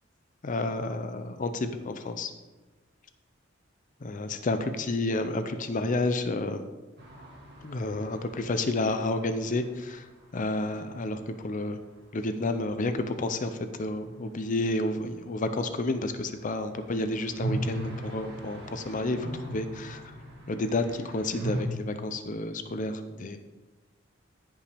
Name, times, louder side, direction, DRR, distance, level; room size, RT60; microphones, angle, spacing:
voice 1, 0.4-2.3 4.0-6.6 7.6-10.1 10.3-11.8 12.1-20.1 20.5-23.4, left 2 dB, 40° left, 9 dB, 0.5 m, -30 dB
sound 1, 7.0-10.8 11.0-11.1 11.3-11.4 16.4-21.6, right 1 dB, 60° right, 2.0 m, -38 dB
14.5 x 5.4 x 3.5 m, 1.2 s
head